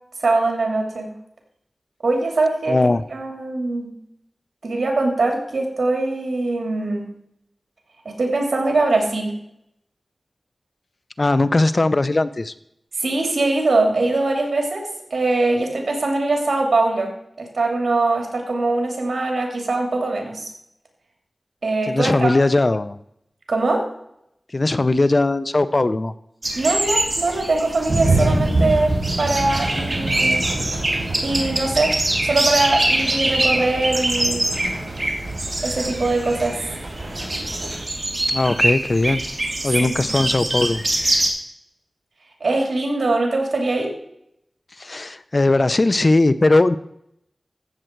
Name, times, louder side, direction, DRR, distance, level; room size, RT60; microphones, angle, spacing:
voice 1, 0.2-1.1 2.0-2.8 3.1-3.9 4.6-7.1 8.0-9.3 12.9-17.1 17.4-20.5 21.6-22.3 23.5-23.8 26.5-30.4 31.2-31.9 32.2-34.4 35.6-36.6 39.8-39.9 42.4-43.9, right 2 dB, 80° right, 2 dB, 2.9 m, -22 dB
voice 2, 2.7-3.0 11.2-12.5 21.9-23.0 24.5-26.1 38.3-39.2 39.6-40.8 44.8-46.8, left 2 dB, 50° left, 14 dB, 0.6 m, -19 dB
sound 1, 26.4-41.3, right 1 dB, 45° right, 2.6 m, -24 dB
sound 2, 27.8-37.8, right 2 dB, 65° right, 5.9 m, -26 dB
15.0 x 7.6 x 4.6 m, 0.77 s
cardioid pair, 45°, 0 cm